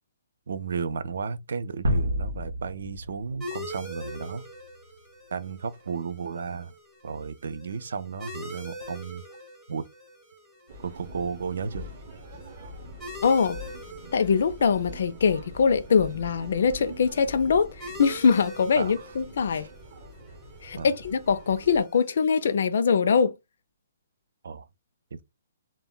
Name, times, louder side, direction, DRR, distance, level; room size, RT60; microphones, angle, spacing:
voice 1, 0.5-4.5 5.3-6.7 7.0-9.2 9.7-9.8 10.8-11.9 18.8-18.9 19.5-19.7 20.8-20.9 24.4-24.7 25.1-25.2, right 5 dB, 60° right, 0.4 m, -33 dB
sound 1, 1.8-4.8, equal, 90° right, 0.9 m, -30 dB
sound 2, 3.4-22.6, equal, 5° right, 0.5 m, -45 dB
sound 3, 10.7-21.8, equal, 35° right, 0.8 m, -44 dB
voice 2, 13.2-13.6 14.1-19.7 20.6-23.3, left 6 dB, 55° left, 0.3 m, -23 dB
2.1 x 2.0 x 3.7 m
hypercardioid pair, 175°, 0 cm